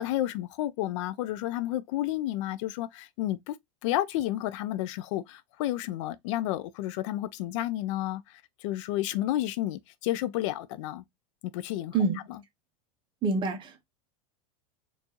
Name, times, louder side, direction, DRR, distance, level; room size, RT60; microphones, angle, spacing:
voice 1, 0.0-3.6 3.8-8.2 8.6-11.0 11.5-12.0, left 14 dB, 65° left, 0.4 m, -31 dB
voice 2, 11.9-12.3 13.2-13.8, right 4 dB, 30° right, 1.0 m, -27 dB
4.5 x 2.7 x 2.8 m
supercardioid pair, 140°, 17 cm